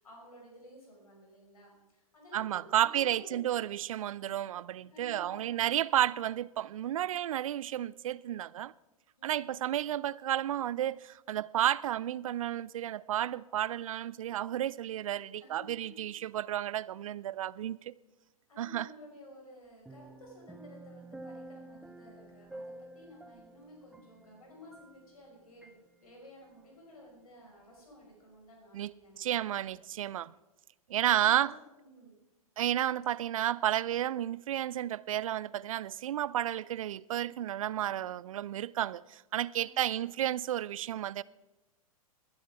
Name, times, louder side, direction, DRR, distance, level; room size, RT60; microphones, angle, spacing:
voice 1, 0.0-3.6 4.9-5.6 9.2-9.6 15.3-15.8 18.5-29.5 30.9-31.5 31.8-32.2 39.6-40.1, equal, 75° left, 5.1 m, -54 dB
voice 2, 2.3-8.7 9.2-17.9 18.6-18.9 28.7-28.9 29.2-30.3 30.9-31.5 32.6-41.2, right 12 dB, 65° right, 0.4 m, -32 dB
sound 1, 19.9-25.3 25.6-25.8, right 2 dB, 5° right, 0.3 m, -50 dB
21.5 x 11.5 x 3.5 m
figure-of-eight pair, 105°, 19 cm